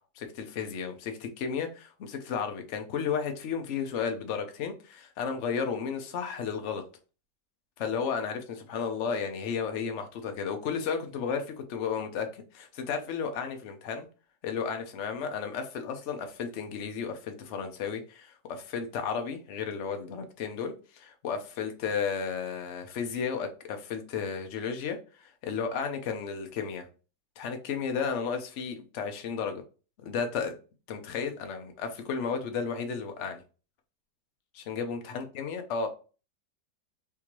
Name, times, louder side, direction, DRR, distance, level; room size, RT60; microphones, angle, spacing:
voice 1, 0.2-6.8 7.8-14.1 14.4-26.9 27.4-29.6 30.0-30.5 30.9-33.4 34.5-35.9, left 6 dB, 60° left, 6 dB, 0.7 m, -33 dB
3.6 x 2.8 x 3.0 m, 0.34 s
omnidirectional pair, 2.0 m